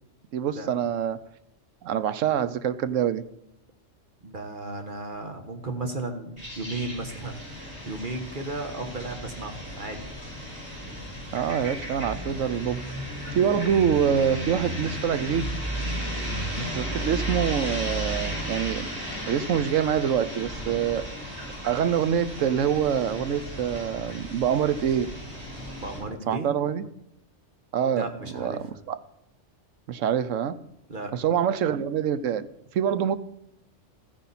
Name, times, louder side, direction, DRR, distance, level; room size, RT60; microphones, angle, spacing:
voice 1, 0.3-1.2 1.8-3.2 11.3-12.8 13.3-15.5 16.5-18.9 19.3-21.1 21.6-25.1 26.3-26.9 27.7-28.1 28.3-29.0 29.9-30.6 31.1-32.5 32.7-33.2, right 8 dB, 80° right, 14 dB, 1.1 m, -25 dB
voice 2, 4.2-10.0 25.8-26.6 28.0-28.6 30.9-31.1, right 2 dB, 40° right, 5 dB, 1.3 m, -35 dB
sound 1, 6.4-26.0, equal, 20° right, 6.0 m, -34 dB
14.5 x 9.9 x 4.2 m, 0.86 s
omnidirectional pair, 1.3 m